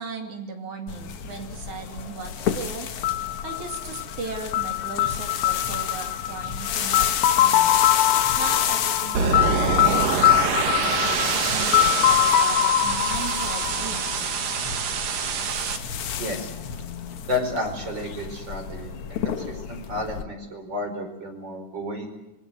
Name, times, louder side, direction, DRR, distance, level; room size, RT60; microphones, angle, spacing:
voice 1, 0.0-2.9 3.4-7.9 8.4-10.6 11.2-14.1, right 4 dB, 60° right, 4 dB, 4.1 m, -37 dB
sound 1, 0.9-20.2, left 8 dB, 55° left, 1.8 m, -31 dB
sound 2, 3.0-14.8, left 13 dB, 90° left, 2.8 m, -23 dB
sound 3, 9.2-15.8, right 6 dB, 80° right, 3.6 m, -25 dB
voice 2, 16.1-16.5 17.3-18.9 19.2-22.1, left 1 dB, 30° right, 4 dB, 5.5 m, -31 dB
26.0 x 22.0 x 7.7 m, 1.0 s
omnidirectional pair, 3.8 m